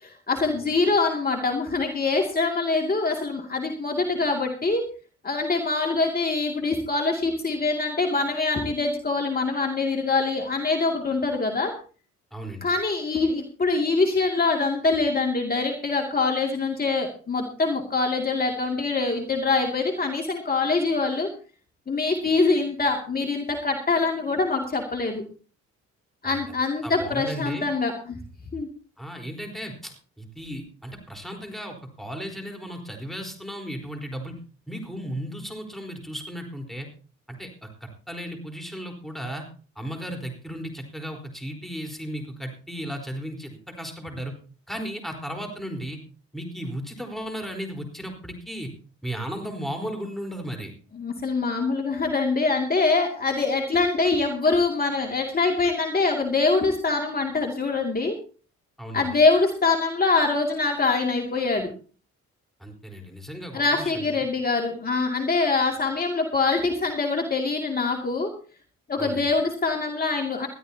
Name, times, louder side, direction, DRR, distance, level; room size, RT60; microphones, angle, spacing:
voice 1, 0.0-4.8 5.2-11.7 12.6-21.3 21.9-25.2 26.2-28.2 28.5-28.7 50.9-58.1 58.9-61.7 63.5-68.3 68.9-70.5, left 3 dB, 30° left, 1 dB, 2.5 m, -24 dB
voice 2, 12.3-12.7 26.2-26.4 26.8-27.7 29.0-34.3 34.7-36.9 37.3-39.4 39.8-44.3 44.7-46.0 46.3-48.7 49.0-50.7 58.8-59.1 62.6-64.2 69.0-69.3, equal, ahead, 2 dB, 4.2 m, -35 dB
21.0 x 13.0 x 2.9 m, 0.39 s
cardioid pair, 90°, 30 cm